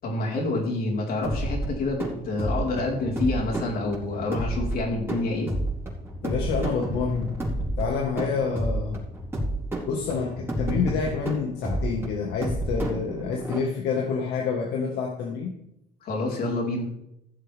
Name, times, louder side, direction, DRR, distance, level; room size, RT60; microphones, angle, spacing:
voice 1, 0.0-5.5 16.0-16.9, left 2 dB, 60° left, -2 dB, 4.6 m, -28 dB
sound 1, 1.2-13.6, right 1 dB, 15° right, 4.3 m, -30 dB
voice 2, 6.2-7.4 7.8-9.0 9.9-15.5, left 5 dB, 80° left, 0 dB, 1.7 m, -28 dB
15.5 x 7.7 x 3.6 m, 0.78 s
cardioid pair, 110°, 17 cm